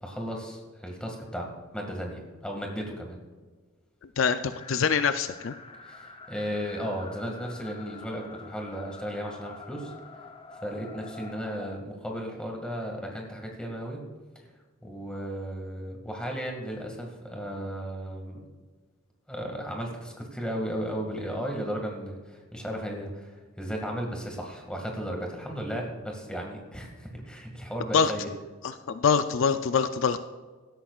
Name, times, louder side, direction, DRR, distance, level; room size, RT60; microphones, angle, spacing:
voice 1, 0.0-3.2 5.8-9.9 10.6-14.0 14.8-18.4 19.3-28.3, equal, 5° left, 1 dB, 2.0 m, -35 dB
voice 2, 4.2-5.5 27.9-28.1 28.6-30.2, left 6 dB, 70° left, 10 dB, 0.5 m, -24 dB
sound 1, 4.5-11.8, left 3 dB, 25° left, 0.7 m, -46 dB
16.5 x 13.0 x 2.4 m, 1.4 s
head